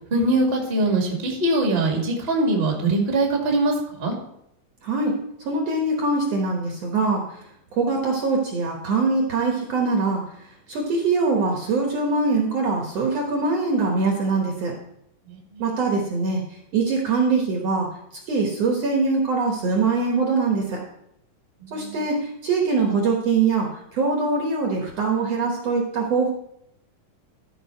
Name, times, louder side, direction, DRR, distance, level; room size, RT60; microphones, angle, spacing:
voice 1, 0.1-4.1 15.3-15.7 21.6-21.9, right 2 dB, 25° right, 0 dB, 1.7 m, -22 dB
voice 2, 4.8-5.2 5.5-7.2 7.8-10.2 10.7-14.7 15.6-16.4 16.7-17.9 18.3-20.8 21.7-26.3, right 4 dB, 55° right, 0 dB, 2.1 m, -23 dB
13.5 x 5.6 x 4.5 m, 0.75 s
omnidirectional pair, 3.9 m